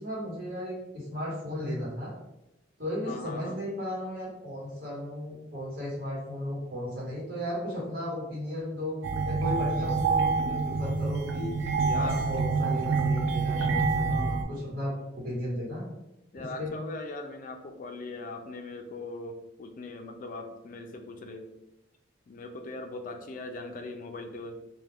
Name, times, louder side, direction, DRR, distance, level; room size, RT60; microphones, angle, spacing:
voice 1, 0.0-2.1 2.8-8.9 9.2-11.5 11.9-15.8 16.6-16.7, left 1 dB, 55° right, -6 dB, 1.3 m, -35 dB
voice 2, 3.1-3.6 11.8-12.2 13.6-13.7 14.1-14.6 16.3-21.5 22.3-24.6, left 2 dB, 45° left, 5 dB, 0.4 m, -40 dB
sound 1, 9.0-14.4, right 4 dB, 85° right, 0.4 m, -27 dB
2.4 x 2.2 x 3.3 m, 0.91 s
head